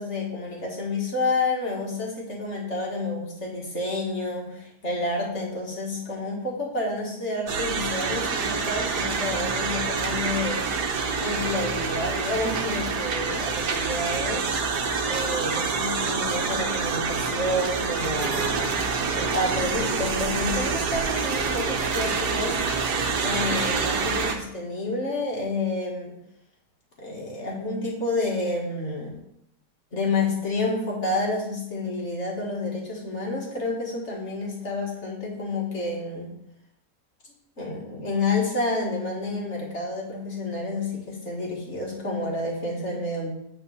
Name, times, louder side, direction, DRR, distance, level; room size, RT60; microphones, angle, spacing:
voice 1, 0.0-10.6 11.2-14.5 15.0-22.6 23.2-26.2 27.0-29.2 29.9-36.3 37.6-43.3, left 2 dB, 45° left, -2 dB, 2.1 m, -29 dB
sound 1, 7.5-24.3, right 5 dB, 75° right, 1.5 m, -27 dB
8.6 x 4.1 x 5.7 m, 0.77 s
omnidirectional pair, 1.8 m